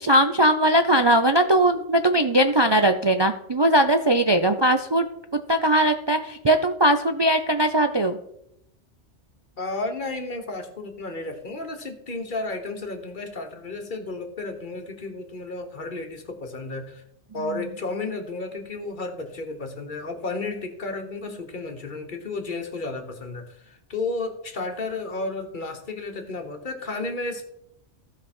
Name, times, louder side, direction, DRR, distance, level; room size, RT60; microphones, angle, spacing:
voice 1, 0.0-5.1 5.3-8.2, right 1 dB, 40° right, 6 dB, 0.4 m, -20 dB
voice 2, 9.6-17.0 17.3-27.4, left 3 dB, 45° left, 6 dB, 1.4 m, -32 dB
15.5 x 5.2 x 4.4 m, 0.78 s
omnidirectional pair, 1.2 m